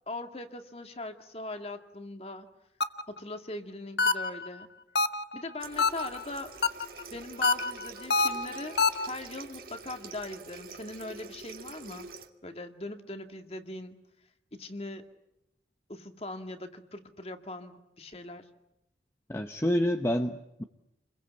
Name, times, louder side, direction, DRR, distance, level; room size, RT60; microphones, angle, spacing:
voice 1, 0.1-2.5 3.1-4.7 5.3-6.5 7.1-12.1 12.4-14.0 14.5-15.0 15.9-18.5, left 2 dB, 35° left, 6 dB, 2.1 m, -40 dB
sound 1, 2.8-3.2 4.0-4.5 4.9-5.4 5.8-6.2 6.6-7.0 7.4-9.1, left 3 dB, 70° left, 1.0 m, -26 dB
Water tap faucet, 5.6-12.3, right 4 dB, 55° right, 2.0 m, -46 dB
voice 2, 19.3-20.6, left 1 dB, 15° left, 6 dB, 0.9 m, -28 dB
29.0 x 22.5 x 8.2 m, 0.88 s
head